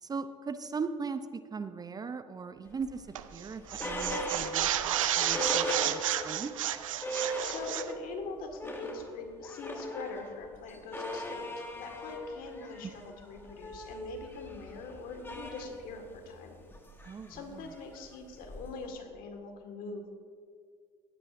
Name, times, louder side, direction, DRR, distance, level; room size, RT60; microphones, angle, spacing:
voice 1, 0.0-6.5 13.1-13.2 17.0-17.7, right 5 dB, 25° right, 11 dB, 0.5 m, -39 dB
sound 1, 2.8-6.4 6.7-6.8 7.0-8.1 8.4-18.9, equal, 15° left, 1.5 m, -39 dB
sound 2, 3.1-3.4 3.7-7.9, right 12 dB, 90° right, 0.4 m, -31 dB
voice 2, 7.4-16.6 17.3-20.1, left 3 dB, 60° left, 5 dB, 1.7 m, -44 dB
16.5 x 9.8 x 2.5 m, 2.1 s
hypercardioid pair, 70°, 17 cm